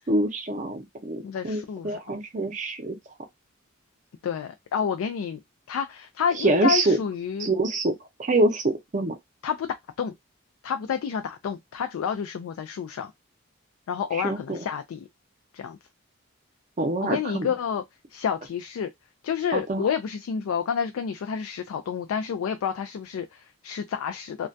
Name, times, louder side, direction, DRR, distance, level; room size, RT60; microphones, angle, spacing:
voice 1, 0.1-3.0 6.4-7.0 7.4-7.9 8.2-9.1 14.2-14.6 16.8-17.5 19.5-19.8, right 2 dB, 35° right, 0.5 m, -25 dB
voice 2, 1.2-2.0 4.2-5.4 5.7-7.5 9.4-10.1 10.6-13.1 13.9-15.1 15.5-15.8 17.0-17.8 18.1-18.9 19.2-24.5, left 7 dB, 90° left, 0.3 m, -29 dB
2.2 x 2.1 x 2.5 m
head